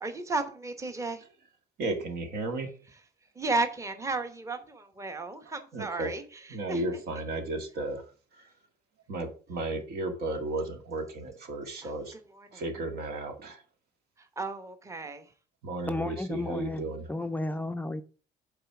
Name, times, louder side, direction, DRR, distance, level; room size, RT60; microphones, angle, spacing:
voice 1, 0.0-1.2 3.3-7.0 11.8-11.9 12.3-12.6 14.2-15.3, right 3 dB, 20° right, 1.0 m, -34 dB
voice 2, 1.8-2.7 5.7-6.1 6.5-8.5 9.1-12.1 12.5-13.6 15.6-17.1, right 2 dB, 70° right, 1.9 m, -34 dB
voice 3, 15.9-18.0, left 2 dB, 10° left, 0.4 m, -33 dB
6.6 x 4.2 x 5.8 m
cardioid pair, 110°, 17 cm